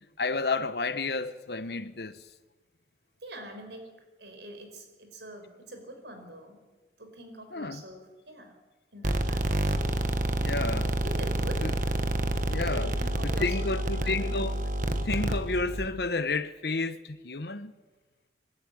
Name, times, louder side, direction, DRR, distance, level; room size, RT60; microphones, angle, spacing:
voice 1, 0.2-2.2 7.5-7.8 10.4-10.9 11.6-11.7 12.5-12.9 13.2-17.7, left 3 dB, 65° left, 1.0 m, -31 dB
voice 2, 3.2-3.9 4.2-6.6 7.0-8.6 8.9-9.7 11.0-11.7 12.7-14.3, right 1 dB, 75° right, 4.9 m, -44 dB
sound 1, 9.0-15.9, right 1 dB, 45° right, 1.5 m, -28 dB
24.5 x 13.0 x 9.2 m
head